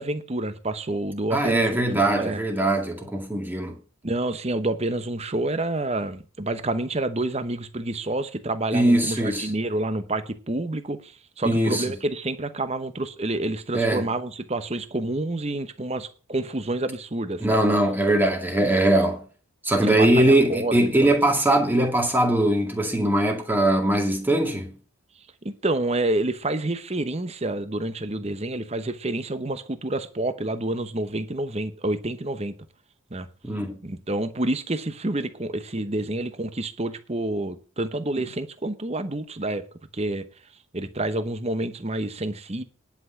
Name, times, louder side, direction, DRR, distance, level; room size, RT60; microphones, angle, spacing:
voice 1, 0.0-2.4 4.0-17.6 19.8-21.1 25.4-32.5 33.1-33.3 33.8-39.6 39.9-40.3 40.7-42.6, right 2 dB, 30° right, 0.9 m, -28 dB
voice 2, 1.3-3.8 8.7-9.5 11.4-11.9 13.7-14.1 17.4-19.2 19.6-24.8 33.4-33.8, right 1 dB, 10° right, 2.1 m, -21 dB
10.5 x 5.9 x 8.0 m
head